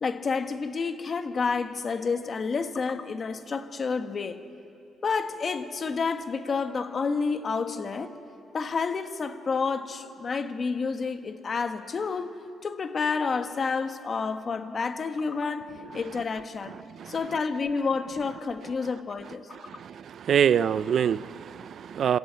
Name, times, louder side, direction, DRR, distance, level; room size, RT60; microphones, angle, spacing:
voice 1, 0.0-4.4 5.0-8.1 8.5-12.4 12.6-16.7 17.0-19.5, left 5 dB, 40° left, 8 dB, 1.4 m, -29 dB
voice 2, 19.7-22.2, right 8 dB, 60° right, 17 dB, 0.4 m, -25 dB
26.5 x 13.0 x 9.0 m, 2.6 s
cardioid pair, 90°, 0 cm